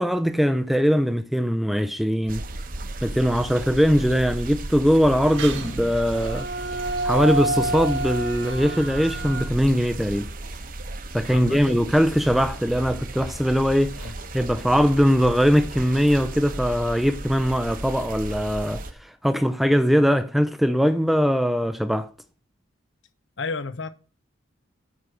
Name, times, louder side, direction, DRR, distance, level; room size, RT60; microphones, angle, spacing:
voice 1, 0.0-2.4 3.0-6.5 7.0-10.3 11.1-22.1, equal, ahead, 0.4 m, -21 dB
sound 1, 2.3-18.9, right 2 dB, 45° right, 0.9 m, -35 dB
sound 2, 5.2-9.4, right 2 dB, 75° right, 1.7 m, -29 dB
voice 2, 11.3-11.9 14.0-14.1 23.4-23.9, left 4 dB, 75° left, 0.8 m, -32 dB
8.2 x 6.3 x 7.7 m
head